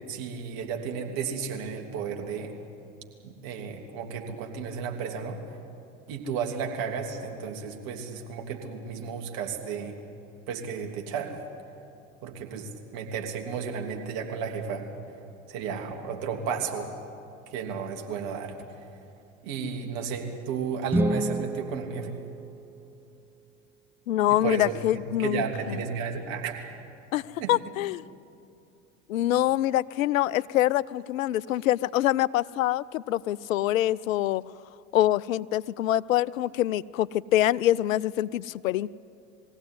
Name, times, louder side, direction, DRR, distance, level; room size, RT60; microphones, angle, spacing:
voice 1, 0.1-2.5 3.2-5.4 6.1-9.9 10.5-11.4 12.2-14.8 15.5-16.9 17.5-18.5 19.4-22.1 24.3-24.8 25.2-26.8 27.4-27.5, right 6 dB, 60° right, 2 dB, 2.9 m, -33 dB
sound 1, 20.9-23.1, right 1 dB, 5° right, 0.6 m, -30 dB
voice 2, 24.1-25.8 27.1-28.0 29.1-34.4 34.9-38.9, left 13 dB, 80° left, 20 dB, 0.5 m, -25 dB
21.5 x 16.0 x 9.6 m, 2.7 s
hypercardioid pair, 70°, 39 cm